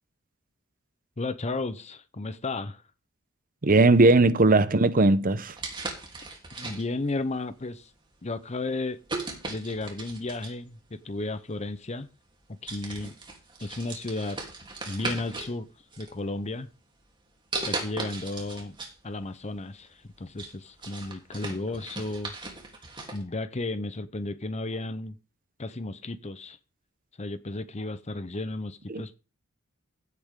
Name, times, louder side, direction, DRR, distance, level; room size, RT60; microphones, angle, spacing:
voice 1, 1.2-2.8 6.6-7.9 8.2-9.0 9.5-12.1 12.5-13.1 13.6-14.4 14.9-15.7 16.0-16.7 17.6-18.8 19.0-22.3 23.1-25.1 25.6-26.6 27.2-29.2, left 2 dB, 35° left, 0.8 m, -33 dB
voice 2, 3.6-5.5 28.9-29.0, right 2 dB, 45° right, 0.8 m, -19 dB
sound 1, 5.4-7.1 7.8-8.1 9.1-10.7 11.7-11.8 12.3-12.4 12.7-15.5 15.9-16.6 17.5-19.0 19.3-19.4 19.9-23.2, right 3 dB, 25° right, 3.3 m, -37 dB
15.5 x 8.3 x 3.8 m
head